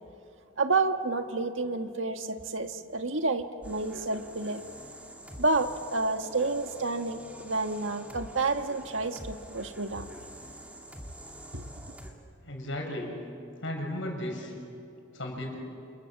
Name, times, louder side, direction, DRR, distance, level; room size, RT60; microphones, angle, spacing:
voice 1, 0.6-4.6 5.4-10.1 11.5-11.6, right 3 dB, 75° right, 6 dB, 1.7 m, -30 dB
sound 1, 3.6-12.1, right 1 dB, 5° right, 2.5 m, -46 dB
voice 2, 12.4-13.2 13.6-14.5 15.1-15.6, left 1 dB, 70° left, 2 dB, 6.7 m, -35 dB
29.0 x 28.5 x 7.2 m, 2.6 s
head